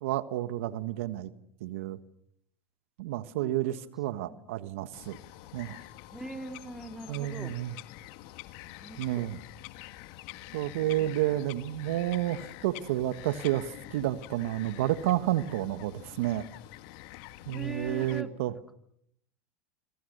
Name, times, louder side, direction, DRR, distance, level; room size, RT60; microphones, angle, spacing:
voice 1, 0.0-1.3 1.6-2.0 3.0-5.2 5.5-5.8 7.1-7.8 9.0-9.4 10.5-16.5 17.5-18.5, right 14 dB, 75° right, 12 dB, 1.5 m, -30 dB
voice 2, 3.3-3.9 4.3-4.4 6.1-7.5 8.8-9.3 10.8-11.2 17.5-18.3, right 1 dB, 5° right, 7 dB, 3.0 m, -42 dB
Bird vocalization bird call bird song, 4.9-18.2, left 16 dB, 65° left, 2.0 m, -47 dB
29.0 x 26.0 x 6.7 m, 0.70 s
hypercardioid pair, 105°, 7 cm